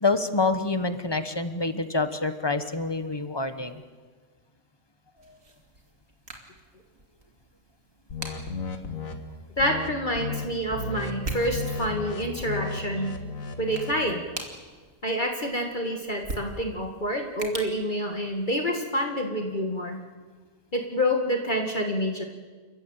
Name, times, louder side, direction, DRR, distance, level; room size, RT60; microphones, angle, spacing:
voice 1, 0.0-3.8 5.2-5.3, left 3 dB, 20° left, 10 dB, 1.1 m, -27 dB
sound 1, 5.2-18.8, right 2 dB, 80° right, 2.9 m, -43 dB
sound 2, 8.1-9.1 9.6-9.9 10.1-10.4 10.7-14.0, left 4 dB, 85° left, 2.2 m, -34 dB
voice 2, 9.6-13.1 13.6-14.2 15.0-20.0 20.7-22.2, equal, 35° left, 2 dB, 2.1 m, -27 dB
30.0 x 14.0 x 9.0 m, 1.5 s
omnidirectional pair, 1.4 m